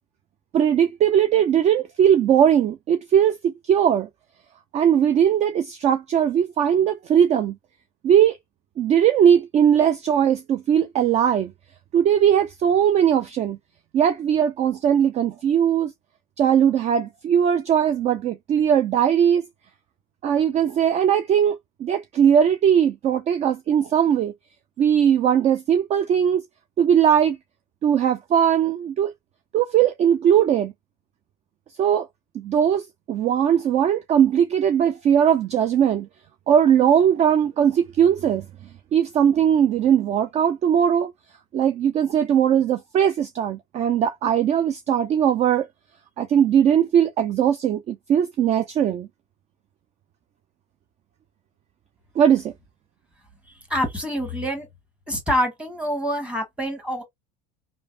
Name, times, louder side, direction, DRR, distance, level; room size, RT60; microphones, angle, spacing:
voice 1, 0.5-4.1 4.7-7.5 8.0-8.4 8.8-11.5 11.9-13.6 13.9-15.9 16.4-19.4 20.2-24.3 24.8-26.4 26.8-27.4 27.8-29.1 29.5-30.7 31.8-32.1 32.3-36.1 36.5-38.5 38.9-41.1 41.5-45.7 46.2-49.1 52.2-52.5, right 9 dB, 35° right, 0.3 m, -19 dB
voice 2, 53.7-54.7 55.1-57.0, equal, 5° right, 1.4 m, -26 dB
3.2 x 2.0 x 2.5 m
hypercardioid pair, 90°, 20 cm